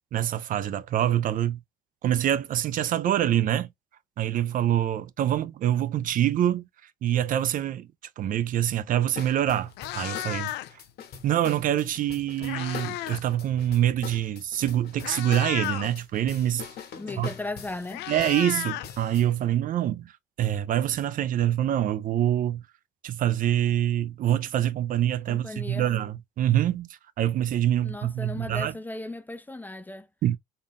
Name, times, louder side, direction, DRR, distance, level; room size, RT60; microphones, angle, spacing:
voice 1, 0.1-1.6 2.0-3.7 4.2-6.6 7.0-7.9 8.2-10.5 11.2-16.6 17.2-17.3 18.1-20.1 20.4-22.6 23.0-26.9 27.2-28.7 30.2-30.4, right 11 dB, 55° right, 0.5 m, -25 dB
Meow, 9.1-9.3 9.6-10.9 12.0-13.3 13.6-13.8 14.5-14.6 15.0-15.9 17.2-17.3 17.6-19.5, left 15 dB, 85° left, 0.5 m, -34 dB
sound 1, 9.2-19.3, left 7 dB, 65° left, 1.4 m, -43 dB
voice 2, 17.0-18.1 25.3-25.9 27.8-30.1, left 2 dB, 10° left, 0.5 m, -36 dB
3.9 x 2.4 x 3.5 m
cardioid pair, 110°, 17 cm